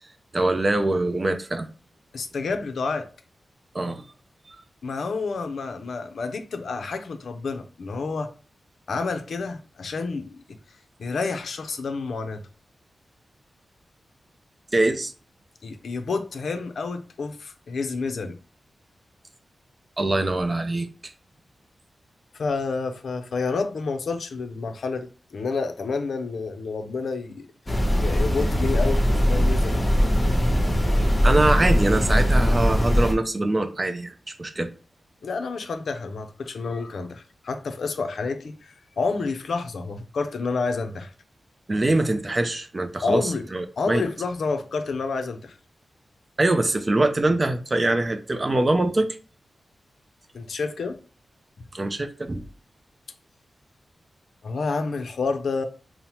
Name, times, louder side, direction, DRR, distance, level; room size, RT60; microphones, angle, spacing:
voice 1, 0.3-1.7 3.7-4.0 14.7-15.1 20.0-20.9 31.2-34.1 34.4-34.7 41.7-44.0 46.4-49.1 51.7-52.4, right 2 dB, 30° right, 0.4 m, -23 dB
voice 2, 2.1-3.1 4.8-8.3 8.9-10.4 11.0-12.4 15.6-18.4 22.3-27.5 28.0-29.7 35.2-41.1 43.0-43.4 43.8-45.5 50.3-51.0 54.4-55.6, left 4 dB, 75° left, 0.5 m, -29 dB
sound 1, 27.7-33.1, equal, 20° left, 0.8 m, -20 dB
5.4 x 2.0 x 2.9 m
wide cardioid pair, 110°, 0 cm